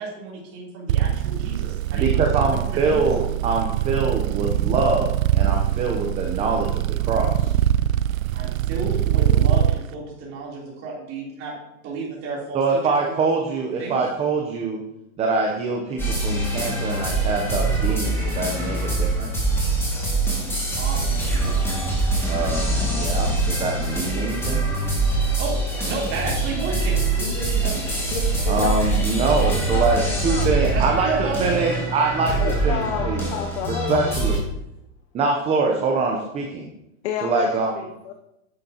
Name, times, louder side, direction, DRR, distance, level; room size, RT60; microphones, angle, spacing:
voice 1, 0.0-3.0 8.3-11.5 11.8-12.9 13.8-14.0 20.8-21.5 25.4-27.9 30.6-32.4 32.7-33.2, right 4 dB, 35° right, -4 dB, 3.5 m, -32 dB
sound 1, 0.9-9.8, right 11 dB, 85° right, 0.5 m, -22 dB
voice 2, 1.9-7.5 12.5-14.8 15.2-19.3 22.3-24.6 28.5-32.3 32.6-33.2 33.7-34.4 35.1-36.7 37.2-37.7, right 3 dB, 15° right, 1 dB, 0.8 m, -24 dB
sound 2, 16.0-34.4, right 2 dB, 5° left, 2.2 m, -24 dB
voice 3, 28.0-30.5 32.4-34.1 37.0-38.1, left 8 dB, 55° left, 4 dB, 0.9 m, -31 dB
9.7 x 8.0 x 2.9 m, 0.85 s
supercardioid pair, 145°, 40 cm